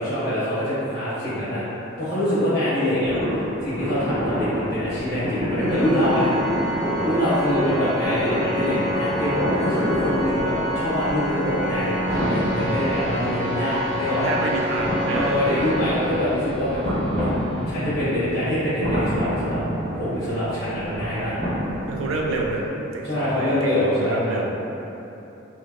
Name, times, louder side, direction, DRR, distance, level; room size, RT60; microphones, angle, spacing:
voice 1, 0.0-1.6 2.0-3.1 3.6-6.3 7.0-14.3 15.0-17.3 17.7-19.6 19.9-21.4 23.0-24.3, left 1 dB, 50° left, -12 dB, 1.2 m, -24 dB
sound 1, 3.0-22.7, equal, 45° right, 0.9 m, -29 dB
Organ, 5.6-16.6, equal, 70° left, 0.8 m, -28 dB
voice 2, 7.0-8.5 13.9-16.1 21.9-24.7, right 2 dB, 80° right, -1 dB, 0.4 m, -29 dB
sound 2, 12.1-21.5, right 2 dB, 20° left, 1.3 m, -39 dB
3.2 x 2.1 x 2.4 m, 2.9 s
head